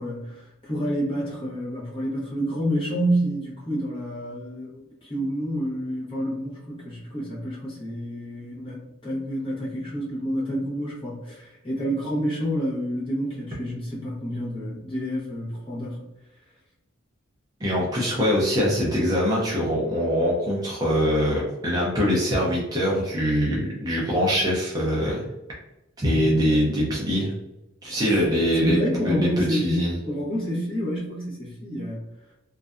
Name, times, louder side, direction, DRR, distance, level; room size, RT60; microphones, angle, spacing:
voice 1, 0.0-16.0 27.8-28.0 28.5-32.0, equal, 25° left, -6 dB, 0.7 m, -28 dB
voice 2, 17.6-25.2 26.0-27.3 27.8-28.8 29.0-29.9, equal, 20° right, -5 dB, 0.4 m, -23 dB
2.5 x 2.2 x 2.4 m, 0.94 s
head